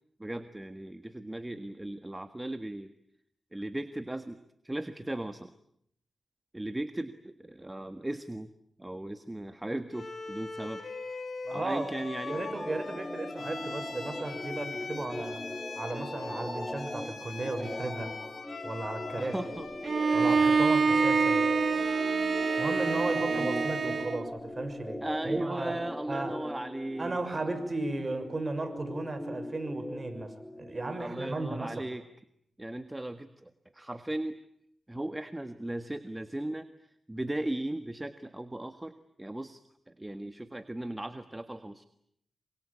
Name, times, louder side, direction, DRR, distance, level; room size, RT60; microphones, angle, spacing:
voice 1, 0.2-2.9 3.5-4.4 4.6-5.5 6.5-8.5 8.8-10.8 11.1-11.2 11.5-12.4 19.2-19.7 23.2-23.7 25.0-27.2 31.0-32.0 32.6-34.4 34.9-36.7 37.1-39.6 39.9-41.8, right 1 dB, 15° right, 9 dB, 1.6 m, -37 dB
Bowed string instrument, 9.9-23.1, left 3 dB, 55° left, 6.3 m, -41 dB
voice 2, 11.4-12.0 12.3-15.4 15.8-18.1 18.6-19.3 20.1-21.5 22.6-25.7 26.1-26.4 27.0-31.9, right 2 dB, 35° right, 8 dB, 6.3 m, -35 dB
sound 1, 12.3-31.3, left 1 dB, 15° left, 2.9 m, -40 dB
Bowed string instrument 2, 19.8-24.3, right 5 dB, 65° right, 1.3 m, -26 dB
27.5 x 25.0 x 8.7 m, 0.72 s
cardioid pair, 55°, 0 cm